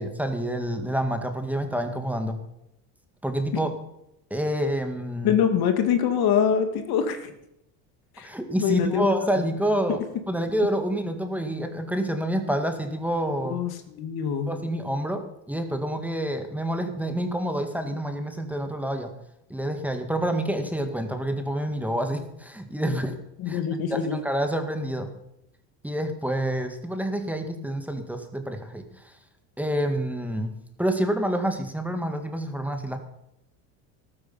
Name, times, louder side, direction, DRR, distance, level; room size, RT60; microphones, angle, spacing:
voice 1, 0.0-2.4 3.2-3.7 4.3-5.4 8.2-13.6 14.5-19.1 19.5-23.1 23.5-23.6 23.9-25.1 25.8-29.2 29.6-30.5 30.8-33.0, right 1 dB, 5° right, 6 dB, 2.0 m, -28 dB
voice 2, 5.2-7.3 8.2-8.3 8.6-9.4 13.4-14.5 23.4-24.2, left 8 dB, 55° left, 8 dB, 2.1 m, -24 dB
13.5 x 13.0 x 5.7 m, 0.80 s
supercardioid pair, 105°, 43 cm